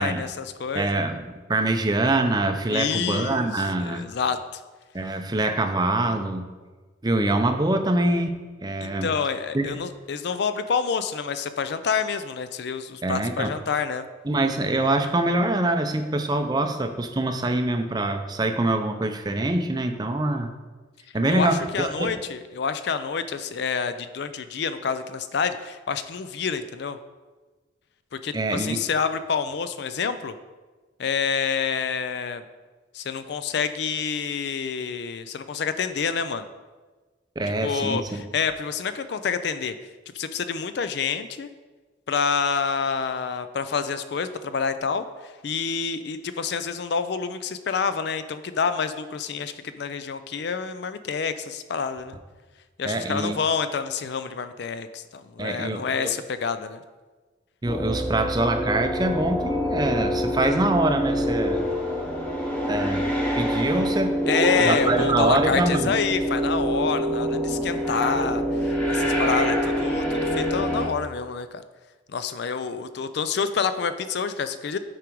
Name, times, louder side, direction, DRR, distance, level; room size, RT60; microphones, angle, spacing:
voice 1, 0.0-1.0 2.7-4.6 8.8-14.0 21.3-27.0 28.2-30.3 31.0-32.4 32.9-36.5 37.6-39.7 40.1-41.5 42.1-45.0 45.4-52.2 52.8-56.8 64.3-70.0 70.4-71.6 72.1-74.8, left 6 dB, 60° left, 11 dB, 0.4 m, -28 dB
voice 2, 0.7-4.1 4.9-6.4 7.0-9.1 9.5-9.8 13.0-13.5 14.2-20.5 21.1-22.1 28.3-28.8 37.4-38.2 52.8-53.4 55.4-56.1 57.6-61.6 62.7-63.1 63.4-64.2 64.6-65.9, right 2 dB, 20° right, 7 dB, 0.5 m, -24 dB
sound 1, 57.7-70.9, equal, 5° left, 1.0 m, -25 dB
8.7 x 4.7 x 4.6 m, 1.3 s
head